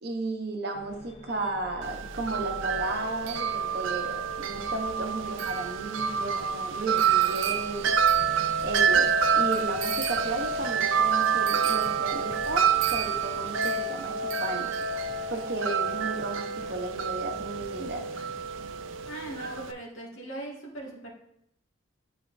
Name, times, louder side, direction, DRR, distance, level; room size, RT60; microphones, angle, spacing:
voice 1, 0.0-7.9 8.6-14.7 15.3-18.1 19.4-19.5, right 2 dB, 50° right, 3 dB, 0.8 m, -34 dB
sound 1, 0.7-19.1, left 1 dB, 30° left, 0.6 m, -49 dB
Wind chime, 1.8-19.7, right 7 dB, 75° right, 0.4 m, -27 dB
sound 2, 7.1-18.8 19.0-19.2 19.6-19.7 20.0-20.1, right 1 dB, 20° right, 1.8 m, -55 dB
voice 2, 19.1-21.1, right 1 dB, 90° left, -3 dB, 1.8 m, -39 dB
10.0 x 4.3 x 2.6 m, 0.77 s
head